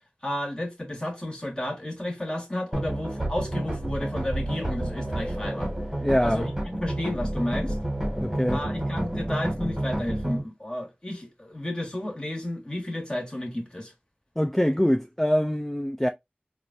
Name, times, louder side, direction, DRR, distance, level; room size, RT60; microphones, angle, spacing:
voice 1, 0.2-5.7 6.2-7.7 8.5-13.9, left 1 dB, 25° left, 1.4 m, -32 dB
sound 1, 2.7-10.4, right 1 dB, 10° right, 1.4 m, -30 dB
voice 2, 6.0-6.5 8.2-8.6 14.4-16.1, equal, 10° left, 0.3 m, -24 dB
3.7 x 2.3 x 2.5 m
wide cardioid pair, 45°, 3 cm